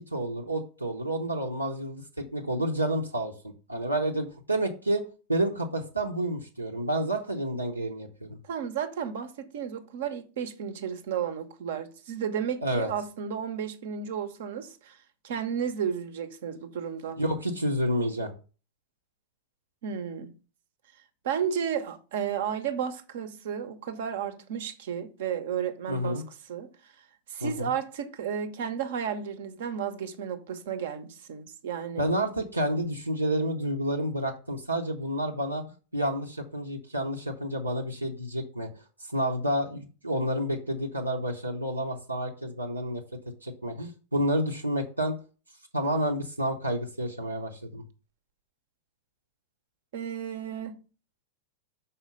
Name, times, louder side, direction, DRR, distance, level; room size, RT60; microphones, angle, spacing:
voice 1, 0.1-3.3 3.7-5.0 5.3-8.4 12.6-12.9 17.2-18.3 25.9-26.2 27.4-27.7 32.0-35.6 35.9-38.7 39.0-43.0 43.4-45.2 45.7-47.8, right 1 dB, 85° right, 0.8 m, -29 dB
voice 2, 8.5-15.0 15.2-17.2 19.8-20.3 21.2-26.2 26.5-26.7 27.3-32.1 49.9-50.8, right 8 dB, 55° right, 0.8 m, -33 dB
5.7 x 4.3 x 5.2 m
figure-of-eight pair, 90°, 0 cm